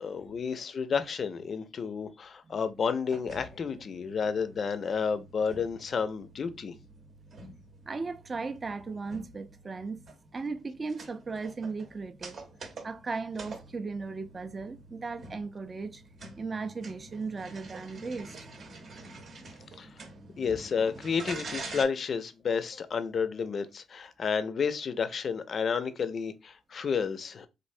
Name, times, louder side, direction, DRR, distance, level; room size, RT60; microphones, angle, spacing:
voice 1, 0.0-6.7 19.8-19.9 20.4-27.5, left 6 dB, 50° left, 0.4 m, -31 dB
sound 1, 3.1-21.8, right 3 dB, 55° right, 0.8 m, -47 dB
voice 2, 7.9-10.0 10.3-12.4 12.8-16.0 16.4-18.4 20.5-20.6, right 4 dB, 30° right, 0.4 m, -36 dB
3.2 x 2.5 x 2.6 m
cardioid pair, 90°, 0 cm